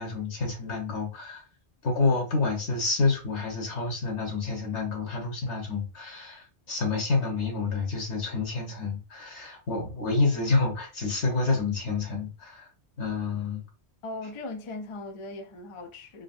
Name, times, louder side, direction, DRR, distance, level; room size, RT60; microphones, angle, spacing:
voice 1, 0.0-1.4 1.8-12.7 13.0-13.6, left 3 dB, 80° left, 1.5 m, -28 dB
voice 2, 14.0-16.2, left 2 dB, 45° left, 0.4 m, -38 dB
3.9 x 2.1 x 2.6 m
omnidirectional pair, 1.1 m